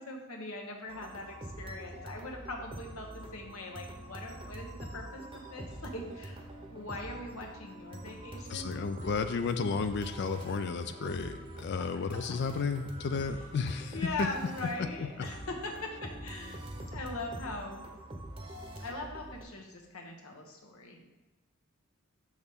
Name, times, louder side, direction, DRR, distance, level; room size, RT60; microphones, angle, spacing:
voice 1, 0.0-6.4 6.7-9.1 11.8-11.9 13.9-16.6 16.9-17.8 18.8-21.2, left 2 dB, 80° left, 1 dB, 1.3 m, -41 dB
sound 1, 0.9-19.4, right 1 dB, 25° right, 0.8 m, -45 dB
voice 2, 8.5-14.3 15.0-15.1, left 5 dB, 50° left, 9 dB, 0.3 m, -33 dB
6.6 x 6.2 x 3.6 m, 1.0 s
head